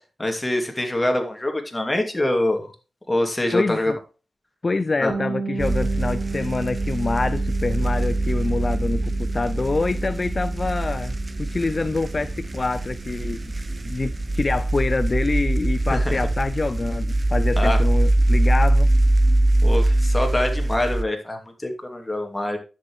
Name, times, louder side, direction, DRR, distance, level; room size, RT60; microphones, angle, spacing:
voice 1, 0.2-2.7 3.1-3.9 5.0-5.1 15.9-16.3 17.6-17.8 19.6-22.6, left 1 dB, 20° left, 2.7 m, -24 dB
voice 2, 3.5-4.0 4.6-13.4 13.8-18.9, left 3 dB, 35° left, 0.4 m, -26 dB
Bass guitar, 5.1-14.7, right 4 dB, 70° right, 1.7 m, -35 dB
sound 1, 5.6-21.0, right 1 dB, 35° right, 0.9 m, -22 dB
10.5 x 7.3 x 3.2 m
cardioid pair, 80°, 0 cm